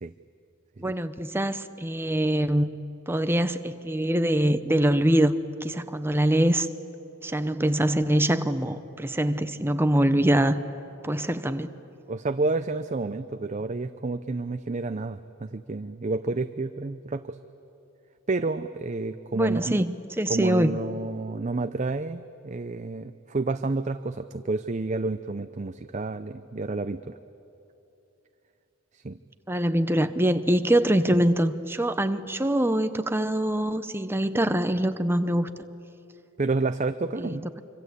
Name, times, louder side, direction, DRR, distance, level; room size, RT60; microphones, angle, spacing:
voice 1, 0.8-2.7 3.1-5.3 5.6-6.7 7.2-10.6 11.0-11.7 19.3-20.8 29.5-35.5 37.2-37.6, right 1 dB, 10° right, 10 dB, 0.8 m, -24 dB
voice 2, 12.1-17.4 18.3-19.8 20.3-27.2 28.9-29.2 36.4-37.5, right 3 dB, 35° right, 10 dB, 0.6 m, -30 dB
25.5 x 25.5 x 8.3 m, 2.9 s
head